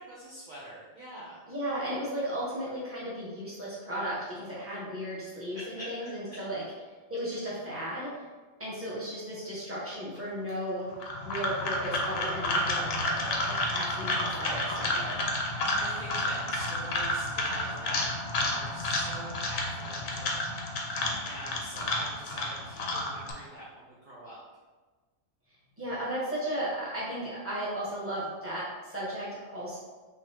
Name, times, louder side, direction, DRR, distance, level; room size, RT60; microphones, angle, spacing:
voice 1, 0.0-1.4 5.5-6.1 15.5-24.4, right 1 dB, 45° right, -7 dB, 0.7 m, -45 dB
voice 2, 1.5-6.6 7.1-8.1 8.6-10.9 11.2-15.2 25.8-29.8, equal, 10° right, -8 dB, 1.1 m, -35 dB
sound 1, 10.9-23.3, left 1 dB, 60° left, 0.8 m, -31 dB
3.9 x 3.2 x 2.8 m, 1.3 s
omnidirectional pair, 1.4 m